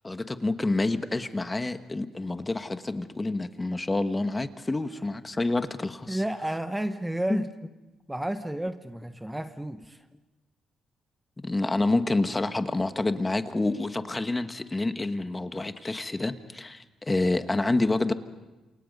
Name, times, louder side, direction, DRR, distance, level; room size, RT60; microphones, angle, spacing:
voice 1, 0.0-6.2 7.3-7.4 11.4-18.1, left 2 dB, 20° left, 9 dB, 1.3 m, -28 dB
voice 2, 6.1-7.5 8.1-10.1, right 1 dB, 10° right, 9 dB, 1.0 m, -31 dB
28.5 x 27.5 x 5.4 m, 1.1 s
cardioid pair, 90°, 0 cm